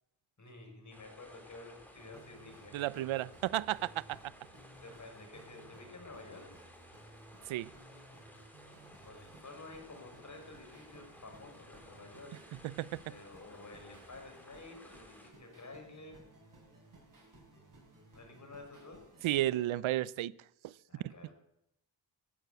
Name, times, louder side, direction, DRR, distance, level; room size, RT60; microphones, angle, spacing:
voice 1, 0.4-2.8 4.4-6.6 9.0-12.4 13.1-16.2 18.1-19.1 20.9-21.3, left 3 dB, 35° left, 4.9 m, -51 dB
sound 1, 0.9-15.3, left 1 dB, 5° left, 3.1 m, -57 dB
sound 2, 2.0-19.7, right 2 dB, 40° right, 5.7 m, -59 dB
voice 2, 2.7-4.3 7.5-7.7 12.6-13.0 19.2-20.3 20.6-20.7 21.0-21.3, right 14 dB, 90° right, 0.6 m, -33 dB
14.0 x 11.0 x 8.0 m
wide cardioid pair, 105°, 46 cm